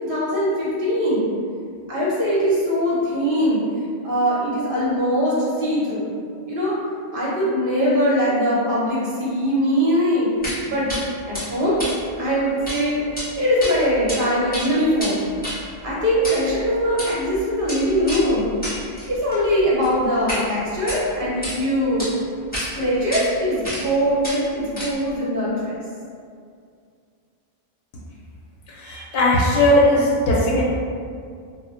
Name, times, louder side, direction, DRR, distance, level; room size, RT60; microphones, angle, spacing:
voice 1, 0.0-1.3 1.9-3.6 4.0-6.1 6.5-6.7 7.1-10.9 11.3-11.8 12.2-22.1 22.7-25.8, equal, 55° right, -7 dB, 0.9 m, -22 dB
sound 1, 10.4-10.6 10.9-11.0 11.3-12.8 13.0-13.2 13.6-14.2 14.4-20.4 20.8-21.5 22.0-22.1 22.5-22.7 23.1-23.2 23.6-23.9 24.2-25.1, equal, 10° left, 0.9 m, -31 dB
voice 2, 28.8-30.6, left 1 dB, 60° left, -6 dB, 0.7 m, -18 dB
2.1 x 2.0 x 3.6 m, 2.2 s
omnidirectional pair, 1.1 m